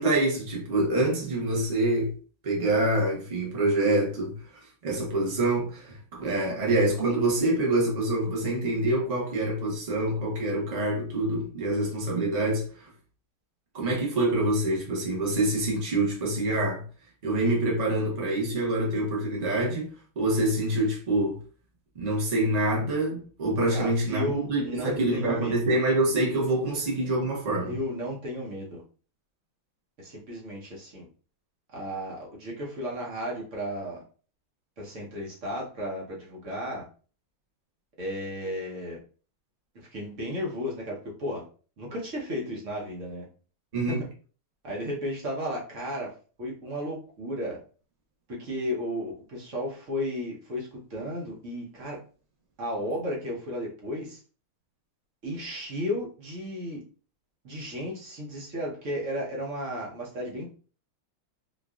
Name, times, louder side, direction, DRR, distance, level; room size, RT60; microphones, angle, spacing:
voice 1, 0.0-2.1 2.4-4.4 4.8-12.9 13.7-16.8 17.2-21.4 21.9-27.8 43.7-44.0, right 1 dB, 80° right, 0.3 m, -26 dB
voice 2, 23.7-25.7 27.7-28.8 30.0-31.1 31.7-34.0 34.8-36.9 38.0-39.0 39.9-41.4 41.8-43.3 43.9-44.1 44.6-47.6 48.4-52.0 52.6-54.2 55.2-56.8 57.4-60.6, equal, 50° right, 1.0 m, -34 dB
4.5 x 2.3 x 2.3 m
omnidirectional pair, 2.3 m